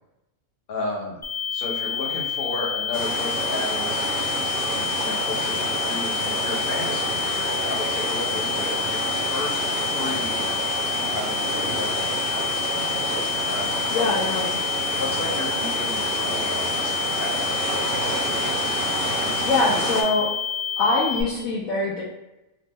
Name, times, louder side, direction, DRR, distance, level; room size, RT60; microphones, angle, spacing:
voice 1, 0.7-1.2 1.5-4.3 5.0-10.4 11.1-12.7 13.4-14.0 14.9-18.4, left 2 dB, 50° left, -1 dB, 0.8 m, -33 dB
sound 1, 1.2-21.2, left 8 dB, 25° left, 0.3 m, -28 dB
sound 2, 2.9-20.0, right 2 dB, 65° right, 0.9 m, -28 dB
voice 2, 13.9-14.6 19.4-20.3 20.8-22.0, left 3 dB, 75° left, -6 dB, 1.0 m, -23 dB
3.0 x 2.0 x 3.4 m, 0.96 s
omnidirectional pair, 1.5 m